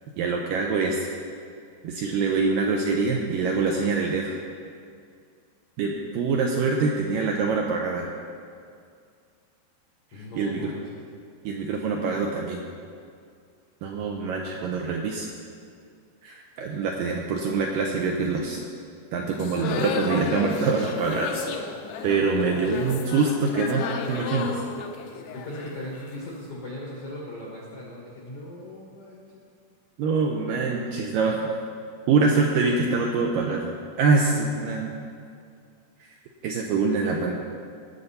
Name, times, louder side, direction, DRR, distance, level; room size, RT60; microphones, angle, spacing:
voice 1, 0.2-1.1 1.8-4.4 5.8-8.1 10.1-10.7 11.4-12.6 13.8-15.3 16.2-18.6 19.1-21.5 22.0-24.6 30.0-31.4 32.1-33.7 34.0-34.9 36.4-37.3, right 4 dB, 80° right, 1 dB, 2.0 m, -25 dB
voice 2, 10.1-10.9 25.3-29.4, left 1 dB, 65° left, -4 dB, 1.4 m, -39 dB
sound 1, 19.4-26.3, left 6 dB, 85° left, 2.8 m, -32 dB
19.0 x 6.6 x 4.2 m, 2.3 s
omnidirectional pair, 4.7 m